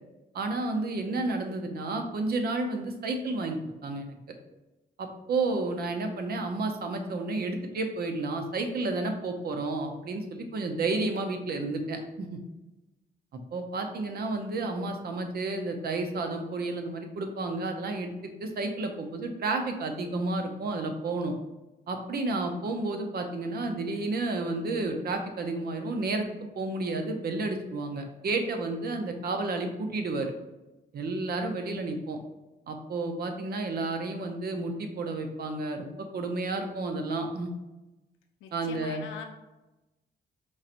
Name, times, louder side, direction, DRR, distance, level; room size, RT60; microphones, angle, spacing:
voice 1, 0.3-4.2 5.0-12.4 13.5-21.3 21.9-26.3 26.6-30.3 30.9-32.2 32.7-37.5 38.5-39.1, right 2 dB, 50° right, 5 dB, 0.7 m, -31 dB
voice 2, 38.4-39.3, left 6 dB, 90° left, 4 dB, 0.5 m, -42 dB
4.6 x 2.8 x 2.5 m, 1.0 s
cardioid pair, 90°, 20 cm